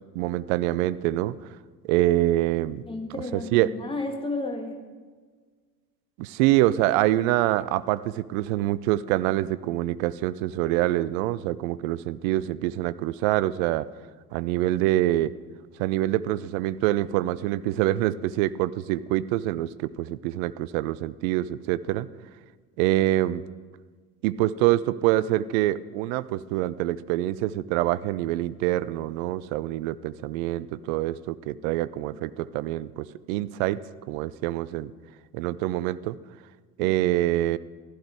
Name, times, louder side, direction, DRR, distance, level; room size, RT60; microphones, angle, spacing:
voice 1, 0.1-1.4 1.8-2.9 3.3-3.7 6.2-13.9 14.3-15.3 15.8-22.1 22.8-23.4 24.2-33.8 34.1-34.9 35.3-36.2 36.8-37.6, right 15 dB, 55° right, 17 dB, 0.7 m, -25 dB
voice 2, 2.9-4.8 36.8-36.9, left 2 dB, 10° left, 3 dB, 2.0 m, -32 dB
15.5 x 13.0 x 4.7 m, 1.5 s
figure-of-eight pair, 70°, 47 cm